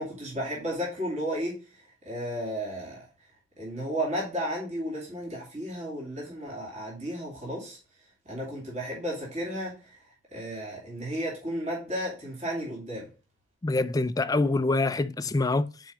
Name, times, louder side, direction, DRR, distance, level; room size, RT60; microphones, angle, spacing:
voice 1, 0.0-3.0 3.6-7.8 8.2-10.0 10.3-13.1, equal, 35° right, 2.6 m, -33 dB
voice 2, 13.6-15.9, left 2 dB, 15° left, 0.3 m, -26 dB
6.1 x 4.7 x 5.0 m
head